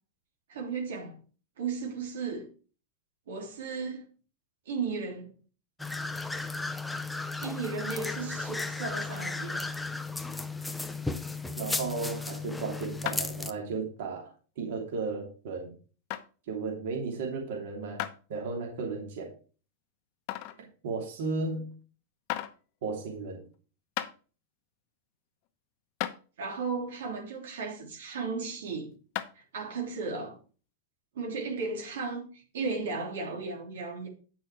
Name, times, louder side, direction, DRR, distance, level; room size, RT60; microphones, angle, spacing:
voice 1, 0.5-1.2 1.6-2.5 3.3-4.0 4.6-5.3 7.4-9.6 26.4-28.9 29.3-30.4 31.1-34.1, right 4 dB, 85° right, 3.2 m, -35 dB
sound 1, 5.8-13.5, left 3 dB, 5° left, 0.6 m, -35 dB
voice 2, 11.6-15.7 16.5-18.0 18.3-19.3 20.8-21.7 22.8-23.4, right 4 dB, 65° right, 3.0 m, -34 dB
sound 2, 13.1-13.4 14.0-14.1 14.8-14.9 16.1-16.3 18.0-18.2 18.8-18.9 20.3-20.6 21.7-21.8 22.3-22.6 23.5-23.6 24.0-24.1 25.5-25.6 26.0-26.2 29.2-29.4, left 14 dB, 45° left, 0.9 m, -34 dB
8.8 x 6.2 x 4.7 m
supercardioid pair, 145°, 0 cm